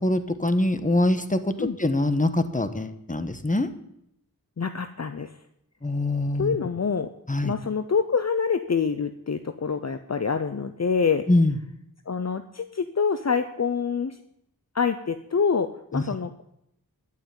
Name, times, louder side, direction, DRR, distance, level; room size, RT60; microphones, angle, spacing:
voice 1, 0.0-3.7 5.8-6.6 7.3-7.5 11.3-11.5 15.9-16.0, left 1 dB, 20° left, 10 dB, 1.4 m, -24 dB
voice 2, 4.6-5.3 6.4-7.1 7.4-11.2 12.1-14.2 14.7-16.4, left 5 dB, 45° left, 9 dB, 0.8 m, -26 dB
11.0 x 9.1 x 9.0 m, 0.78 s
wide cardioid pair, 50°, 35 cm